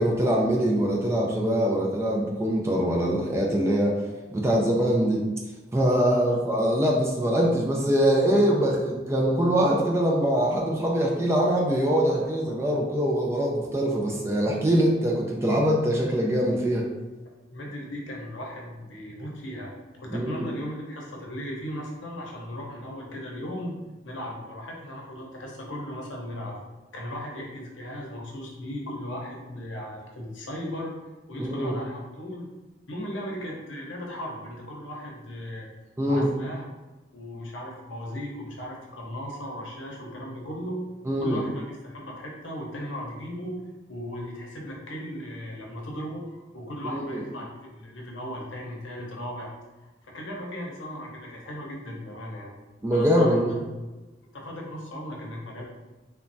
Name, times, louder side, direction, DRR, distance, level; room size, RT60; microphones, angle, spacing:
voice 1, 0.0-4.0 4.3-5.2 5.7-16.9 20.1-20.5 31.4-31.7 36.0-36.3 41.1-41.4 46.9-47.2 52.8-53.6, equal, 15° right, -2 dB, 0.3 m, -23 dB
voice 2, 17.5-23.7 24.0-26.6 26.9-31.0 31.3-32.5 32.9-35.7 36.0-36.6 37.1-40.8 41.1-43.6 43.9-49.5 50.1-52.5 52.9-53.6 54.3-55.6, equal, 85° left, -2 dB, 0.7 m, -37 dB
3.0 x 2.2 x 2.6 m, 1.2 s
head